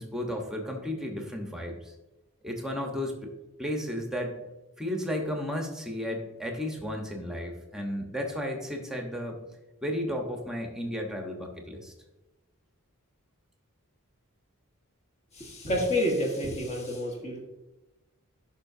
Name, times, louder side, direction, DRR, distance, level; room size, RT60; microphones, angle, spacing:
voice 1, 0.0-1.9 2.4-3.3 3.6-4.3 4.8-9.4 9.8-11.9, left 1 dB, 5° right, 2 dB, 1.0 m, -33 dB
voice 2, 15.3-17.4, equal, 30° left, 0 dB, 1.4 m, -29 dB
11.5 x 5.7 x 2.7 m, 1.0 s
head